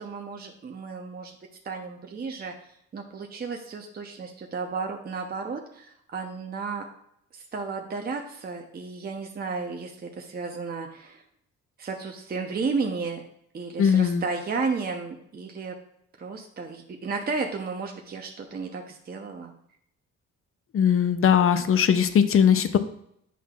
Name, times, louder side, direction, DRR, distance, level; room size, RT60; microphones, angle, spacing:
voice 1, 0.0-1.3 1.6-2.5 2.9-6.9 7.3-11.2 11.8-13.2 13.5-15.8 16.2-19.5, right 4 dB, 30° right, 2 dB, 0.7 m, -33 dB
voice 2, 13.8-14.2 20.7-22.8, left 8 dB, 45° left, 11 dB, 0.6 m, -20 dB
8.4 x 5.6 x 2.4 m, 0.72 s
cardioid pair, 90°, 30 cm